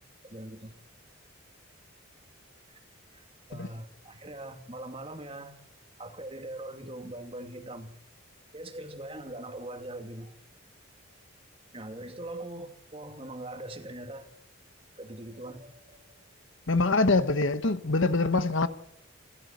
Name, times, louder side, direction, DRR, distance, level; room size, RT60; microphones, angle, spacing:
voice 1, 0.2-0.7 2.7-2.8 3.1-5.6 6.0-7.9 8.5-10.3 11.7-14.3 15.0-16.2, right 1 dB, 25° right, 2.5 m, -42 dB
voice 2, 16.7-18.7, left 3 dB, 60° left, 1.2 m, -24 dB
29.5 x 13.5 x 8.4 m
head